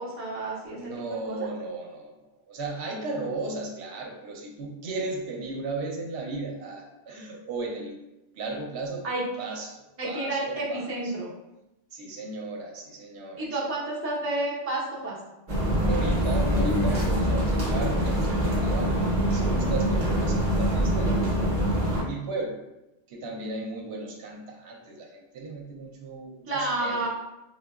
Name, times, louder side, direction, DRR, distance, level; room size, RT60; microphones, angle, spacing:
voice 1, 0.0-1.5 9.0-9.2 10.0-11.3 13.4-15.2 26.4-27.1, right 2 dB, 15° right, -6 dB, 0.5 m, -30 dB
voice 2, 0.7-8.0 8.3-9.1 9.4-11.1 11.9-13.5 15.8-21.6 21.9-22.6 23.1-27.1, right 3 dB, 80° right, 1 dB, 0.8 m, -35 dB
sound 1, 15.5-22.0, equal, 45° right, 0.8 m, -24 dB
3.7 x 2.2 x 2.3 m, 0.93 s
omnidirectional pair, 1.1 m